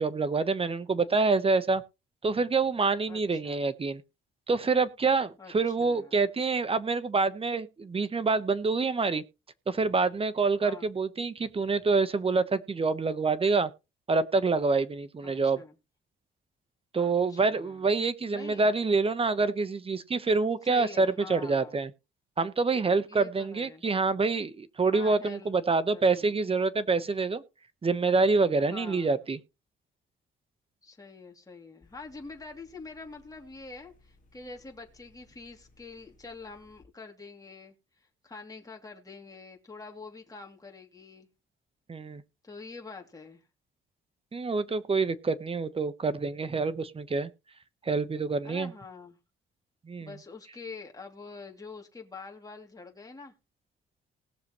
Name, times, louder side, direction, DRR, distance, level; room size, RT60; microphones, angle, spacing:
voice 1, 0.0-1.8 2.2-4.0 4.5-9.2 9.7-13.7 14.1-15.6 16.9-21.9 22.4-27.4 27.8-29.4 41.9-42.2 44.3-47.3 47.8-48.7 49.9-50.1, right 4 dB, 30° right, 1.0 m, -26 dB
voice 2, 3.1-3.6 5.4-6.2 10.6-10.9 15.2-15.8 16.9-17.8 18.3-18.7 20.6-21.8 23.1-23.8 24.9-25.5 25.9-26.5 28.7-29.2 30.8-37.7 38.2-41.3 42.4-43.4 48.4-49.2 50.0-53.3, left 4 dB, 15° left, 2.7 m, -46 dB
sound 1, 31.8-36.9, left 2 dB, 40° left, 1.8 m, -62 dB
19.5 x 6.8 x 3.1 m
cardioid pair, 90°, 20 cm